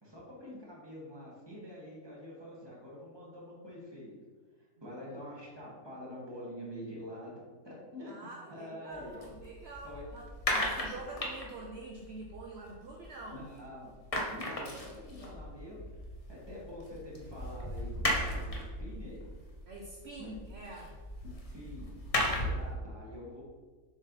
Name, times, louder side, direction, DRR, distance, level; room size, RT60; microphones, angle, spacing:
voice 1, 0.0-4.1 4.8-8.1 8.5-9.2 9.8-10.0 13.3-13.9 14.3-19.2 20.2-20.3 21.5-21.9 22.4-23.4, left 1 dB, 15° right, -5 dB, 1.7 m, -46 dB
voice 2, 8.1-13.5 19.7-21.0, right 2 dB, 60° right, 0 dB, 0.7 m, -46 dB
sound 1, 8.9-13.6 13.8-22.7, left 1 dB, 30° left, 0.9 m, -37 dB
7.2 x 3.7 x 4.1 m, 1.4 s
omnidirectional pair, 1.7 m